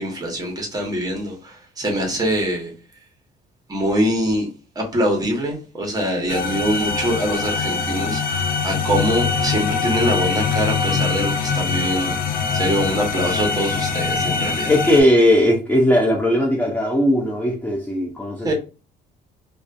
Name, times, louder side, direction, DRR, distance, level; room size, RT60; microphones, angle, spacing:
voice 1, 0.0-2.7 3.7-4.5 4.8-14.7 18.4-18.5, equal, 20° right, 1.0 m, -24 dB
sound 1, 6.3-15.0, left 5 dB, 60° left, 0.5 m, -23 dB
voice 2, 14.7-18.5, left 1 dB, 10° left, 0.4 m, -18 dB
2.3 x 2.3 x 2.4 m
cardioid pair, 110°, 17 cm